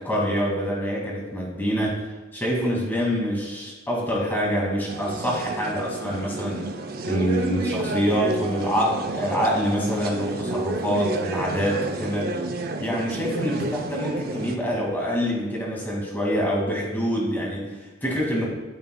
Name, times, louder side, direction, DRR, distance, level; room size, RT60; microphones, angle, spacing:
voice 1, 0.0-2.1 2.3-6.7 7.1-12.3 12.8-18.4, equal, 10° left, -3 dB, 2.1 m, -26 dB
sound 1, 4.9-14.5, right 2 dB, 45° right, 0.6 m, -30 dB
12.0 x 8.6 x 2.3 m, 1.2 s
head